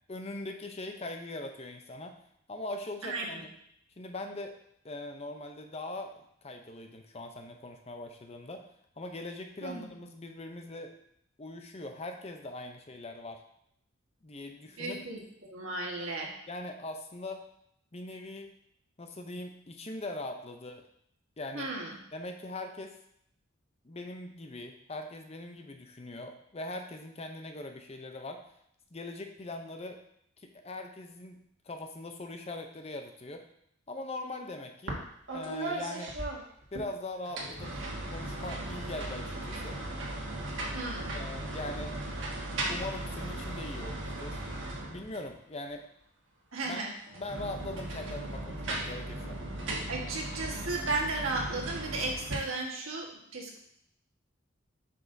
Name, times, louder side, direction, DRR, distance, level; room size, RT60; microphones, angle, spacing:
voice 1, 0.1-2.1 2.5-3.5 4.0-4.6 4.8-8.6 9.0-10.9 11.4-13.4 14.2-15.0 16.0-17.5 17.9-18.5 19.0-20.8 21.4-21.7 22.1-23.0 23.8-28.4 28.9-30.0 30.4-31.4 31.6-33.4 33.9-35.1 35.3-36.1 36.7-37.7 38.1-39.8 41.1-41.9 42.7-44.4 44.9-45.9 46.6-46.8 47.1-49.4, left 2 dB, 30° left, 5 dB, 0.6 m, -41 dB
voice 2, 9.6-9.9 14.8-16.3 21.5-22.0 40.7-41.1 46.5-46.9 49.9-53.6, right 3 dB, 85° right, -1 dB, 1.5 m, -35 dB
sound 1, 34.9-35.0 35.3-36.9 37.3-45.3 47.1-52.3, right 1 dB, 65° right, 1.5 m, -37 dB
7.6 x 6.1 x 2.7 m, 0.72 s
head